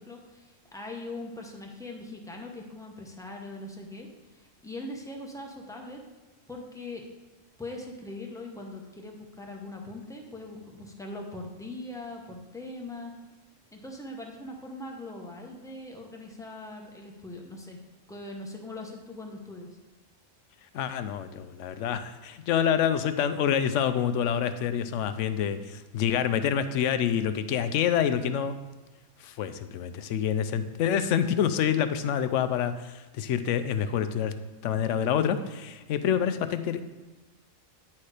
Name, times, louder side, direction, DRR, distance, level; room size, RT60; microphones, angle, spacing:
voice 1, 0.0-6.0 6.5-7.0 7.6-13.1 13.7-17.8 18.1-19.8, left 2 dB, 5° left, 0 dB, 0.8 m, -41 dB
voice 2, 20.7-28.6 29.2-34.3 34.6-36.8, left 8 dB, 70° left, 11 dB, 0.9 m, -27 dB
9.5 x 4.4 x 4.9 m, 1.1 s
omnidirectional pair, 1.4 m